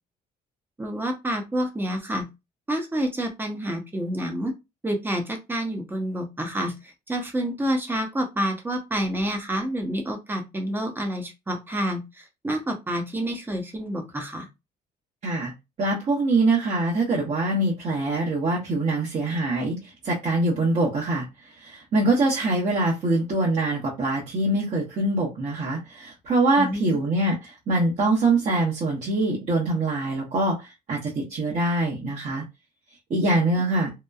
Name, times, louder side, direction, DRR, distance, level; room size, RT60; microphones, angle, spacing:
voice 1, 0.8-2.2 2.7-4.5 4.8-14.5 26.6-26.8, equal, 10° right, 4 dB, 0.7 m, -28 dB
voice 2, 15.8-21.3 21.6-32.4 33.1-33.9, right 2 dB, 45° right, -5 dB, 0.9 m, -24 dB
2.8 x 2.1 x 2.3 m, 0.23 s
cardioid pair, 110°, 17 cm